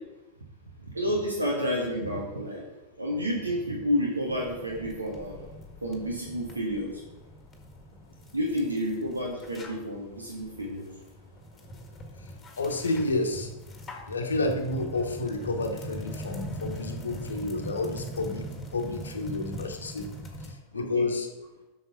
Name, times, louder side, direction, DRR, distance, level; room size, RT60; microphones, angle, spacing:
voice 1, 0.9-2.6 3.0-5.5 5.8-7.0 8.3-10.9 20.7-21.1, equal, 80° right, -2 dB, 1.5 m, -30 dB
sound 1, 4.2-20.5, right 1 dB, 15° left, 1.8 m, -42 dB
voice 2, 12.6-13.5 14.1-20.1 20.4-21.3, left 2 dB, 75° left, 4 dB, 1.2 m, -30 dB
7.8 x 6.4 x 5.9 m, 1.1 s
figure-of-eight pair, 90°, 0 cm